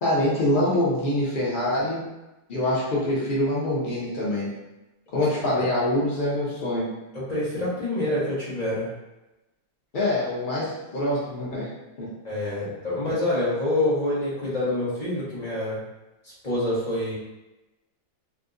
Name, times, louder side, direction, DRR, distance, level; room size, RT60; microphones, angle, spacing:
voice 1, 0.0-2.0 2.5-4.5 5.1-6.9 9.9-11.7 12.0-12.1 13.1-13.2, left 1 dB, 80° left, -7 dB, 0.4 m, -25 dB
voice 2, 7.1-8.9 12.2-15.8 16.4-17.1, left 1 dB, 25° left, -9 dB, 1.1 m, -26 dB
3.5 x 2.7 x 2.5 m, 1.0 s
omnidirectional pair, 2.0 m